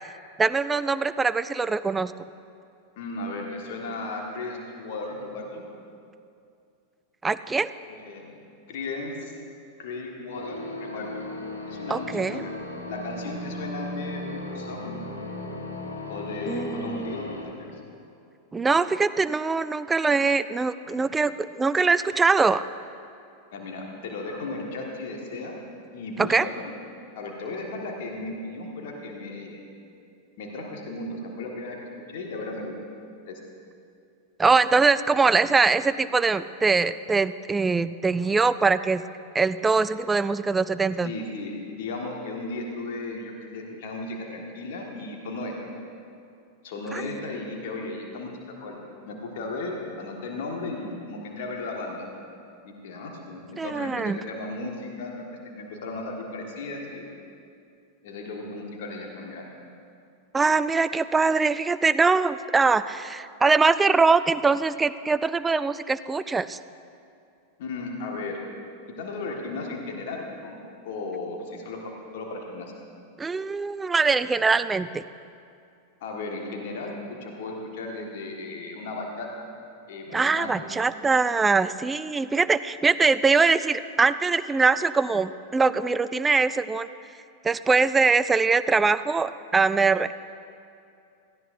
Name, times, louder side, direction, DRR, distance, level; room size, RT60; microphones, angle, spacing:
voice 1, 0.4-2.1 7.2-7.7 11.9-12.5 16.5-17.2 18.5-22.7 26.2-26.5 34.4-39.0 39.3-41.1 46.9-47.0 53.6-54.2 60.3-66.6 73.2-75.0 80.1-86.9 87.4-90.1, right 4 dB, 15° right, 15 dB, 0.3 m, -22 dB
voice 2, 3.0-5.6 7.9-8.4 8.7-9.3 9.8-11.2 11.7-12.5 12.9-15.0 16.1-17.7 20.8-21.0 23.5-25.6 25.9-26.7 27.1-29.6 30.4-32.7 33.3-33.4 35.2-35.4 41.0-45.6 46.6-52.0 52.6-55.2 55.5-57.1 58.0-59.5 67.6-68.4 69.0-70.6 70.8-72.7 76.0-79.5 79.9-80.7, left 2 dB, 55° left, 0 dB, 1.6 m, -35 dB
sound 1, 10.3-17.5, left 1 dB, 75° left, 1.2 m, -36 dB
17.0 x 14.0 x 2.6 m, 2.5 s
figure-of-eight pair, 90°, 0 cm